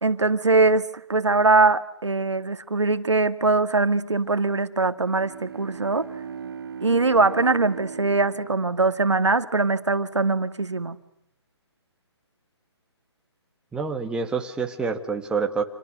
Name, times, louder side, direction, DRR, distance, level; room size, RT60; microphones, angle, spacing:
voice 1, 0.0-6.1 6.8-11.0, right 3 dB, 85° right, 11 dB, 2.0 m, -22 dB
Bowed string instrument, 4.9-9.7, right 7 dB, 55° right, 1.8 m, -39 dB
voice 2, 13.7-15.6, right 5 dB, 5° right, 3 dB, 2.0 m, -27 dB
29.5 x 27.5 x 6.7 m, 0.77 s
figure-of-eight pair, 140°, 15 cm